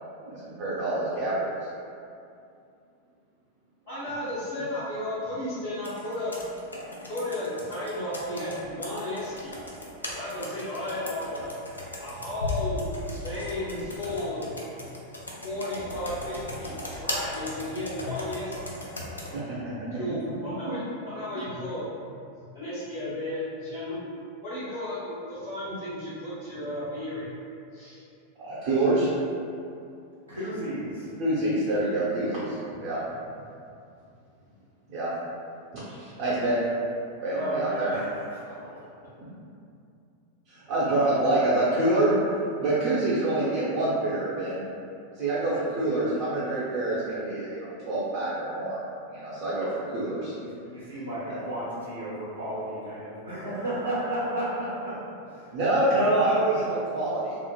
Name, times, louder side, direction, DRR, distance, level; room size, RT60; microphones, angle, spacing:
voice 1, 0.2-1.7 19.3-19.9 28.4-29.1 31.2-33.0 34.9-35.1 35.7-36.6 37.2-37.9 40.5-42.1 42.6-44.6 45.1-48.8 49.1-50.3 51.3-51.4 55.5-57.4, right 2 dB, 45° right, -9 dB, 0.6 m, -26 dB
voice 2, 3.9-6.3 7.0-9.5 10.1-11.5 12.0-12.9 13.2-14.9 15.4-18.8 19.9-21.8 22.3-24.1 24.4-27.3 27.7-28.0, left 1 dB, 60° left, -16 dB, 1.1 m, -34 dB
Computer keyboard, 5.8-19.3, left 2 dB, 80° left, 0.3 m, -37 dB
voice 3, 30.3-31.2 37.3-38.8 50.4-55.6 56.3-56.6, right 1 dB, 75° right, -9 dB, 0.9 m, -33 dB
3.1 x 2.0 x 2.2 m, 2.4 s
figure-of-eight pair, 90°, 0 cm